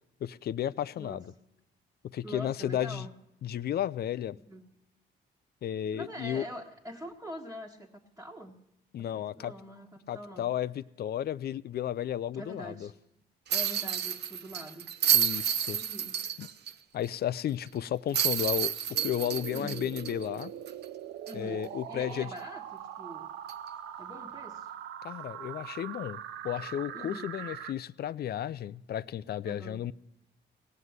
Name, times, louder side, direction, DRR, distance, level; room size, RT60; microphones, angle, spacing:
voice 1, 0.2-1.3 2.1-3.1 3.4-4.4 5.6-6.4 8.9-9.5 10.1-12.9 15.1-15.8 16.4-16.5 16.9-18.7 19.0-20.5 21.3-22.3 25.0-29.9, left 10 dB, 55° left, 18 dB, 0.4 m, -33 dB
voice 2, 2.2-3.1 4.5-4.7 5.9-8.6 9.0-10.5 12.3-12.9 13.5-14.9 15.7-16.2 19.5-19.9 21.3-23.3 24.0-24.7 26.9-27.3 29.4-29.8, equal, 10° right, -4 dB, 1.4 m, -44 dB
sound 1, 13.5-16.7 17.1-17.2 18.1-20.8 21.3-21.4 23.5-23.7, right 9 dB, 60° right, 0.8 m, -30 dB
sound 2, 18.9-27.7, right 10 dB, 90° right, 0.6 m, -42 dB
18.0 x 7.5 x 8.1 m, 0.88 s
cardioid pair, 90°, 20 cm